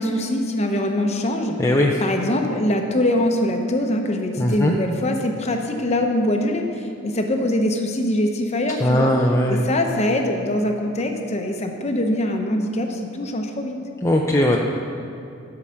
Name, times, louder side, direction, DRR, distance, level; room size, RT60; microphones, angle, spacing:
voice 1, 0.0-1.6 2.0-9.1 9.5-13.8, left 1 dB, 35° left, 3 dB, 0.8 m, -23 dB
voice 2, 1.6-2.0 4.4-4.7 8.8-9.7 14.0-14.6, left 1 dB, 15° left, -1 dB, 0.5 m, -19 dB
12.5 x 4.8 x 5.7 m, 2.7 s
head